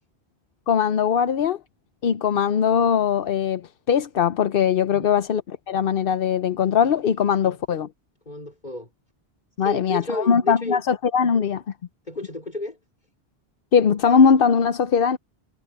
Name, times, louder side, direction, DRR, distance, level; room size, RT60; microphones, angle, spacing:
voice 1, 0.7-1.6 2.0-5.4 5.7-7.9 9.6-11.6 13.7-15.2, left 7 dB, 65° left, 0.9 m, -20 dB
voice 2, 8.3-8.9 9.6-10.8 12.1-12.8, left 1 dB, 45° left, 4.4 m, -32 dB
omnidirectional pair, 1.1 m